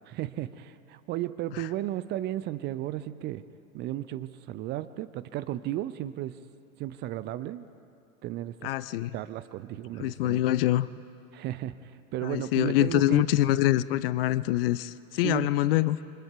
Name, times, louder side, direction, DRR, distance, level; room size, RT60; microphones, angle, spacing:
voice 1, 0.0-3.4 3.7-6.4 6.8-7.7 8.2-8.7 9.1-10.4 11.3-13.2 15.2-15.6, right 14 dB, 25° right, 13 dB, 0.5 m, -34 dB
voice 2, 8.6-9.1 10.0-10.9 12.2-16.0, left 15 dB, 45° left, 17 dB, 0.6 m, -25 dB
27.5 x 25.0 x 4.7 m, 2.6 s
figure-of-eight pair, 90°, 42 cm